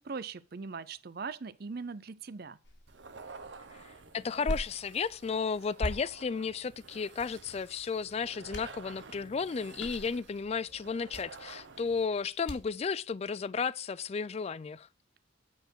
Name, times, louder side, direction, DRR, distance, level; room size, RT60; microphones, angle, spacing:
voice 1, 0.0-2.6, right 4 dB, 55° right, 0.6 m, -40 dB
sound 1, 2.6-12.8, left 1 dB, 65° left, 1.9 m, -44 dB
sound 2, 2.9-12.2, right 4 dB, 70° right, 1.0 m, -51 dB
voice 2, 3.7-14.9, left 5 dB, 35° left, 0.3 m, -33 dB
9.4 x 4.4 x 6.2 m
head